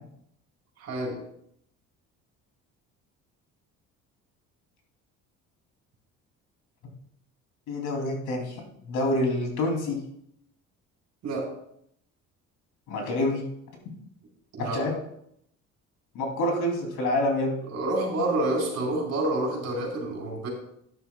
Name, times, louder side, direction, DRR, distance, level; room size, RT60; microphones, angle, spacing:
voice 1, 0.8-1.2 11.2-11.5 14.5-14.8 17.7-20.5, right 1 dB, 60° right, -1 dB, 4.0 m, -28 dB
voice 2, 7.7-10.0 12.9-13.4 14.6-14.9 16.1-17.6, left 1 dB, 85° left, 2 dB, 3.0 m, -27 dB
12.5 x 10.0 x 2.3 m, 0.72 s
cardioid pair, 150°, 30 cm